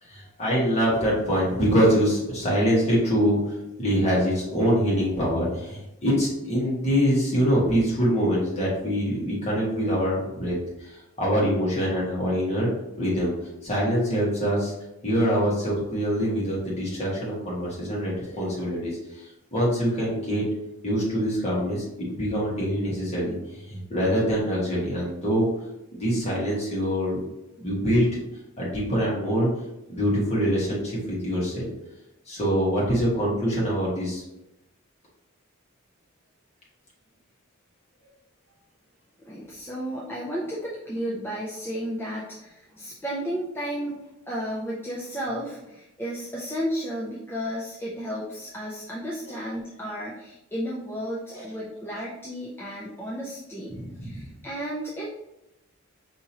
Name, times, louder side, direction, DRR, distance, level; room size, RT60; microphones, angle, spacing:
voice 1, 0.0-12.7 13.0-13.3 13.6-14.7 15.0-20.4 20.8-25.5 25.9-27.2 27.6-28.2 28.6-29.5 29.9-31.7 32.3-34.2 51.3-51.4 51.9-52.1 53.7-54.2, equal, 30° left, -6 dB, 1.5 m, -24 dB
voice 2, 39.2-55.1, equal, 10° left, -5 dB, 0.5 m, -33 dB
5.0 x 2.8 x 2.9 m, 0.91 s
head